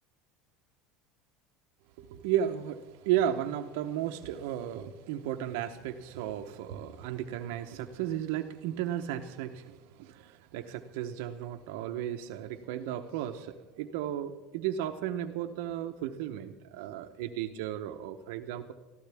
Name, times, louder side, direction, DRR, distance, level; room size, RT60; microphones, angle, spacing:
voice 1, 2.0-18.7, right 11 dB, 80° right, 5 dB, 0.9 m, -34 dB
22.0 x 14.5 x 3.5 m, 1.1 s
supercardioid pair, 135°, 0 cm